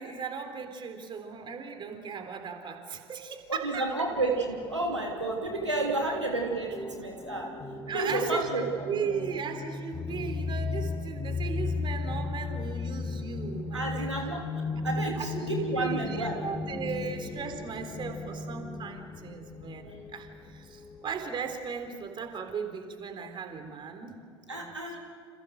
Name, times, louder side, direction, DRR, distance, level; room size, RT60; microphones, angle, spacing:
voice 1, 0.0-3.9 7.9-14.1 15.2-24.2 24.5-24.8, right 6 dB, 35° right, 6 dB, 3.7 m, -37 dB
voice 2, 3.5-7.5 7.9-9.2 13.7-16.4 16.7-16.8 24.5-25.0, right 2 dB, 85° right, 0 dB, 3.0 m, -31 dB
sound 1, 4.1-21.2, left 3 dB, 25° left, 3.7 m, -36 dB
30.0 x 28.0 x 6.6 m, 2.1 s
figure-of-eight pair, 70°, 14 cm